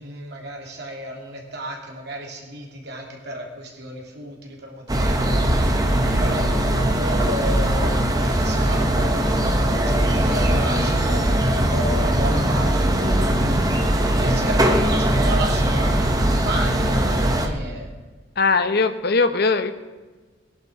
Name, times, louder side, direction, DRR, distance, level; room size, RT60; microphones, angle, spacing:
voice 1, 0.0-17.9, right 1 dB, 60° right, 0 dB, 3.2 m, -33 dB
sound 1, 4.9-17.5, right 1 dB, 20° right, 1.4 m, -20 dB
voice 2, 18.4-19.7, left 4 dB, 55° left, 9 dB, 1.0 m, -20 dB
20.0 x 11.0 x 5.1 m, 1.3 s
head